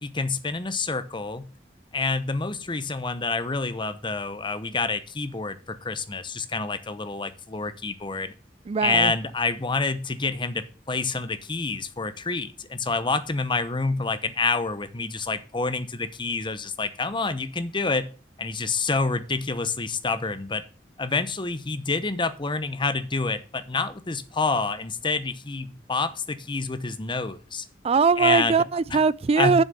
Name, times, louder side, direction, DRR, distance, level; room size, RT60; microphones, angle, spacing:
voice 1, 0.0-1.5 1.9-8.3 8.8-18.1 18.4-20.6 21.0-27.6 28.2-28.6 28.9-29.0 29.4-29.6, left 4 dB, 25° left, 0.8 m, -28 dB
voice 2, 8.7-9.1 27.8-29.6, right 5 dB, 35° right, 0.3 m, -21 dB
7.4 x 6.4 x 6.8 m
head